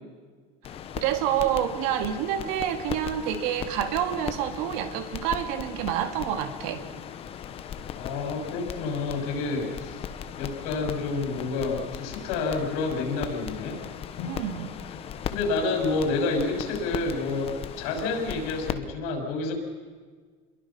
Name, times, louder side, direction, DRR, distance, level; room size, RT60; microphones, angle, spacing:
sound 1, 0.6-18.7, left 8 dB, 35° left, 1.1 m, -38 dB
voice 1, 1.0-6.8 14.2-14.7, right 10 dB, 90° right, 8 dB, 2.2 m, -28 dB
voice 2, 7.9-10.0 10.4-13.8 14.2-14.3 15.3-19.5, left 3 dB, 80° left, 2 dB, 6.4 m, -29 dB
27.5 x 22.5 x 5.8 m, 1.5 s
cardioid pair, 165°, 18 cm